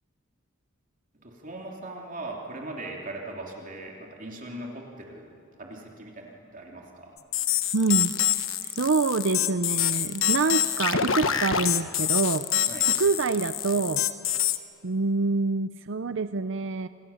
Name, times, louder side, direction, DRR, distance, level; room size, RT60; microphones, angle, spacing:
voice 1, 1.2-7.2 12.7-12.9, right 2 dB, 40° right, 0 dB, 3.2 m, -40 dB
sound 1, 7.3-14.6, left 11 dB, 65° left, 1.2 m, -26 dB
voice 2, 7.7-12.5 13.0-14.1 14.8-16.9, right 3 dB, 60° right, 12 dB, 0.6 m, -26 dB
27.0 x 27.0 x 7.3 m, 2.4 s
head